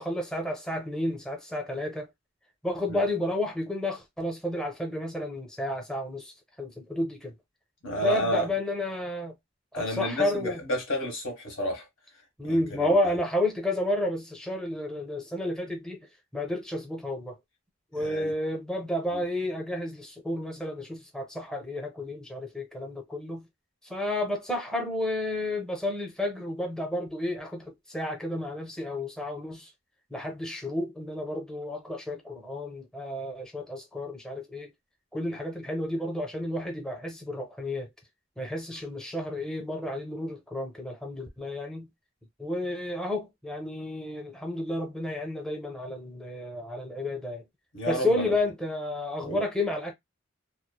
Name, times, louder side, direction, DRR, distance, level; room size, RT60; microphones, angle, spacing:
voice 1, 0.0-2.1 2.6-6.3 6.6-7.3 8.0-9.4 9.7-10.6 12.4-16.1 16.3-17.4 17.9-23.5 23.8-29.7 30.1-34.7 35.1-37.9 38.4-41.9 42.4-47.4 47.9-49.9, left 1 dB, 5° left, 0.5 m, -31 dB
voice 2, 7.8-8.5 9.7-11.9 12.4-13.1 17.9-18.3 19.1-19.2 47.7-48.3 49.2-49.4, equal, 85° left, 1.3 m, -31 dB
3.0 x 2.0 x 2.2 m
head